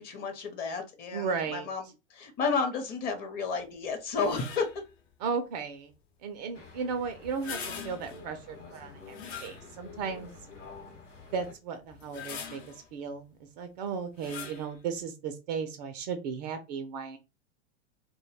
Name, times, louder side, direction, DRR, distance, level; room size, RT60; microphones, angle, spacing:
voice 1, 0.0-4.7, left 4 dB, 25° left, 0.6 m, -32 dB
voice 2, 1.1-1.7 5.2-5.9 6.2-7.6 7.8-9.1 9.4-10.3 11.3-13.3 13.6-17.2, right 5 dB, 35° right, 0.4 m, -35 dB
sound 1, 4.1-4.9 7.2-8.3 9.1-10.0 10.6-10.7 11.9-12.9 14.2-14.7, left 6 dB, 60° left, 0.8 m, -42 dB
sound 2, 6.5-11.5, left 3 dB, 90° left, 0.9 m, -48 dB
2.2 x 2.2 x 3.1 m
figure-of-eight pair, 90°, 36 cm